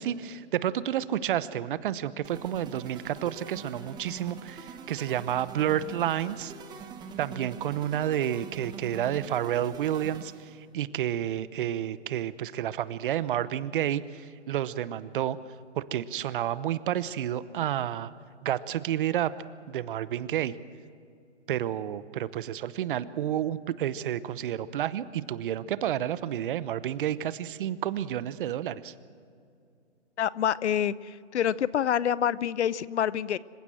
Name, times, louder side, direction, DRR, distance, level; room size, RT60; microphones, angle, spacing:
voice 1, 0.0-6.5 7.2-15.4 15.8-18.1 18.4-19.3 19.7-20.5 21.5-28.9, right 11 dB, 45° right, 16 dB, 0.9 m, -30 dB
sound 1, 2.2-10.6, right 5 dB, 10° right, 1.2 m, -44 dB
voice 2, 30.2-33.4, left 9 dB, 75° left, 19 dB, 0.8 m, -27 dB
26.5 x 16.0 x 7.6 m, 2.4 s
hypercardioid pair, 145°, 35 cm